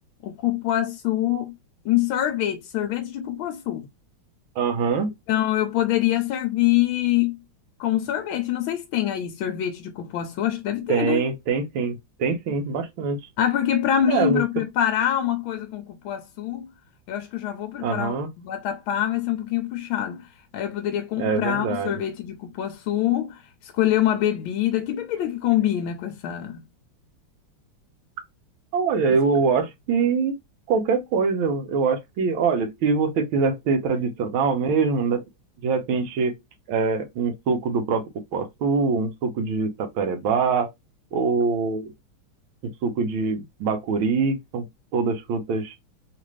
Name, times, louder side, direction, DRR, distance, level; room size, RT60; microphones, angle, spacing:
voice 1, 0.2-1.5 1.8-3.9 5.3-7.4 7.8-11.2 13.4-16.7 17.1-20.3 20.5-26.6 29.1-29.2, left 11 dB, 80° left, 1.4 m, -25 dB
voice 2, 4.6-5.1 10.9-13.2 14.1-14.4 17.8-18.3 21.2-22.0 28.7-30.4 30.7-35.2 35.6-36.4 36.7-40.7 41.1-41.9 42.8-44.7 44.9-45.7, right 5 dB, 80° right, 1.6 m, -24 dB
3.7 x 2.5 x 3.1 m
omnidirectional pair, 2.2 m